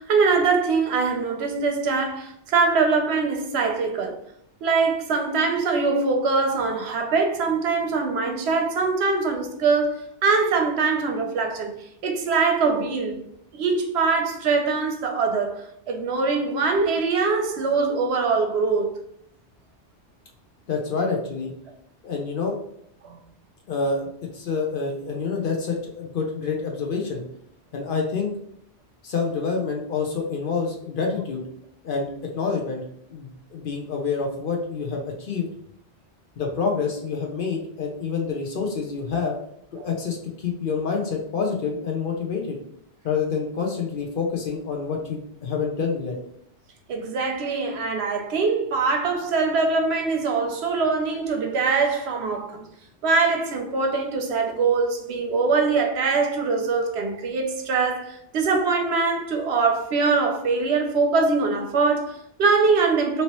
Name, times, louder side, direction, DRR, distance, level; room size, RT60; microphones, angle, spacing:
voice 1, 0.0-4.2 4.6-11.8 12.0-13.2 13.5-18.9 23.0-23.2 46.9-52.6 53.0-63.2, right 4 dB, 70° right, 0.8 m, -23 dB
voice 2, 20.7-21.5 22.0-22.6 23.7-27.2 27.7-28.3 29.0-31.4 31.8-32.1 32.3-32.8 33.1-35.5 36.4-39.3 39.8-42.6 43.0-46.2, left 5 dB, 55° left, 0.7 m, -27 dB
2.9 x 2.8 x 2.9 m
omnidirectional pair, 1.2 m